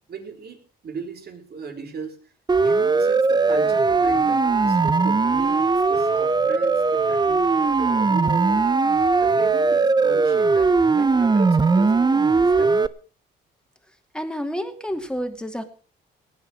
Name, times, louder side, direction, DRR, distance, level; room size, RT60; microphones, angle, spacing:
voice 1, 0.1-8.7 9.2-12.8, right 5 dB, 55° right, 4 dB, 4.4 m, -37 dB
Siren, 2.5-12.9, right 4 dB, 20° right, 0.7 m, -19 dB
voice 2, 14.1-15.6, equal, 5° left, 6 dB, 2.6 m, -29 dB
18.5 x 8.8 x 6.2 m, 0.39 s
cardioid pair, 90°, 20 cm